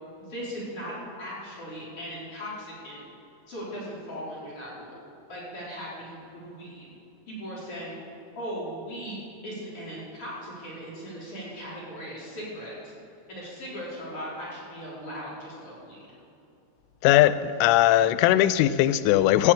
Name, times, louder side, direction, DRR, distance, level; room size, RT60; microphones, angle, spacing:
voice 1, 0.2-3.0 3.5-5.0 5.3-6.9 7.3-8.0 8.4-9.2 9.4-12.7 13.3-16.2, equal, 30° left, -7 dB, 3.7 m, -38 dB
voice 2, 17.0-19.5, left 14 dB, 85° left, 14 dB, 2.8 m, -19 dB
16.0 x 6.7 x 8.5 m, 2.7 s
omnidirectional pair, 6.0 m